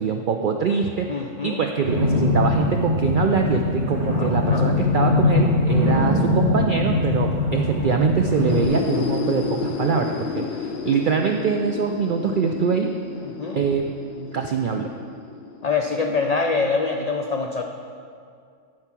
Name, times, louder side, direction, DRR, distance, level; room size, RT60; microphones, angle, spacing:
voice 1, 0.0-1.1 1.4-12.9 13.5-14.9, right 6 dB, 75° right, 4 dB, 0.4 m, -23 dB
voice 2, 1.1-1.6 4.1-4.7 13.2-13.6 15.6-17.6, left 4 dB, 85° left, 3 dB, 0.3 m, -25 dB
sound 1, 1.8-8.6, left 2 dB, 55° right, 2.1 m, -21 dB
sound 2, 8.3-16.0, left 6 dB, 60° left, 0.8 m, -31 dB
12.0 x 4.6 x 5.9 m, 2.3 s
omnidirectional pair, 1.4 m